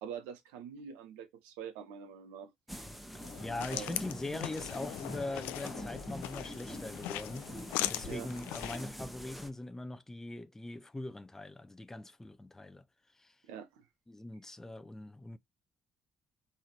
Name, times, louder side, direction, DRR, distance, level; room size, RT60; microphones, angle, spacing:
voice 1, 0.0-2.9 3.7-4.0 8.1-8.3 13.5-13.8, right 8 dB, 75° right, 0.9 m, -45 dB
sound 1, 2.7-9.5, equal, 5° right, 1.2 m, -45 dB
sound 2, 3.2-8.9, left 14 dB, 75° left, 0.5 m, -40 dB
voice 2, 3.4-7.5 7.9-12.8 13.1-13.4 14.1-15.4, left 2 dB, 15° left, 0.7 m, -42 dB
4.4 x 3.6 x 3.0 m
hypercardioid pair, 50°, 3 cm